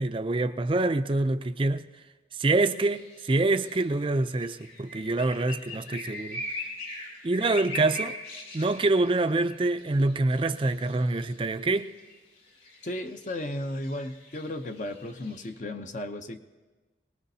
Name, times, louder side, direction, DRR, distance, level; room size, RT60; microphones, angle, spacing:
voice 1, 0.0-1.8 2.4-6.4 7.2-8.2 8.5-11.9, right 2 dB, 30° right, 0.4 m, -26 dB
sound 1, 2.7-15.5, left 1 dB, 60° left, 5.9 m, -41 dB
voice 2, 12.8-16.4, left 1 dB, 45° left, 0.7 m, -35 dB
24.5 x 19.5 x 2.8 m
head